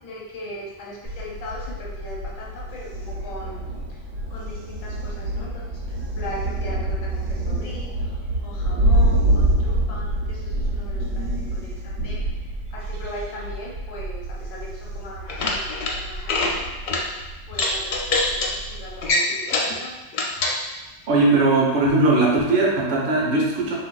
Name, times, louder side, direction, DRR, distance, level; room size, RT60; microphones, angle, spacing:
voice 1, 0.0-3.6 4.3-7.9 8.4-12.2 12.7-16.7 17.5-19.9, left 1 dB, 85° left, -4 dB, 1.2 m, -39 dB
Thunder, 1.0-19.1, right 1 dB, 75° right, 0.9 m, -27 dB
sound 1, 15.2-15.9 16.2-16.5 16.9-17.0 17.5-18.5 19.0-19.7 20.1-20.6, left 2 dB, 65° left, 0.6 m, -23 dB
voice 2, 21.1-23.7, right 2 dB, 50° right, -3 dB, 0.7 m, -19 dB
3.4 x 2.6 x 2.3 m, 1.1 s
omnidirectional pair, 1.4 m